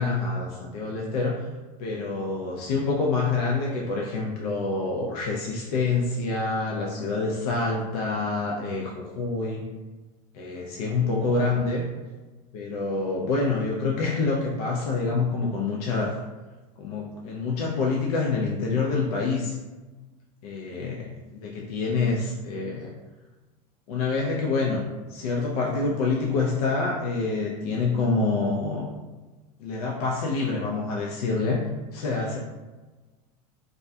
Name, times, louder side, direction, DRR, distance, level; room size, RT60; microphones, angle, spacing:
voice 1, 0.0-1.5 1.8-9.7 10.3-11.8 12.5-16.2 16.8-19.6 20.4-22.9 23.9-28.9 29.6-31.6 31.9-32.4, left 3 dB, 80° left, -2 dB, 0.4 m, -27 dB
2.3 x 2.1 x 2.6 m, 1.2 s
supercardioid pair, 115°, 19 cm